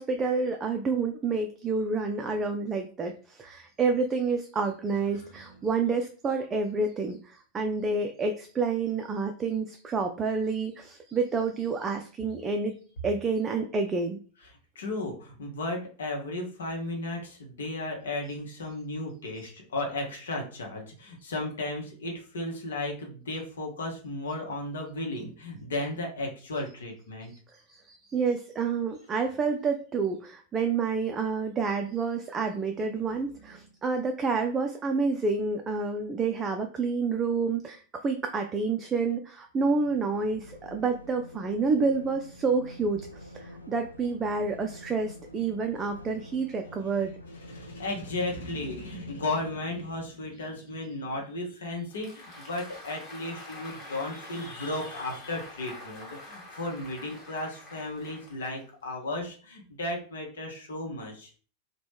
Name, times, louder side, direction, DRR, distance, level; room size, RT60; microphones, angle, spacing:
voice 1, 0.0-12.7 13.0-14.2 27.5-47.1, right 4 dB, 20° right, 4 dB, 0.3 m, -29 dB
voice 2, 14.4-27.3 33.3-33.4 46.9-47.0 47.3-61.3, left 2 dB, 65° left, 1 dB, 0.8 m, -35 dB
sound 1, 39.6-49.5, left 1 dB, 85° left, 0.4 m, -47 dB
Applause, 51.7-58.8, left 1 dB, 30° left, 1.1 m, -46 dB
2.9 x 2.2 x 3.2 m, 0.39 s
figure-of-eight pair, 90°, 0 cm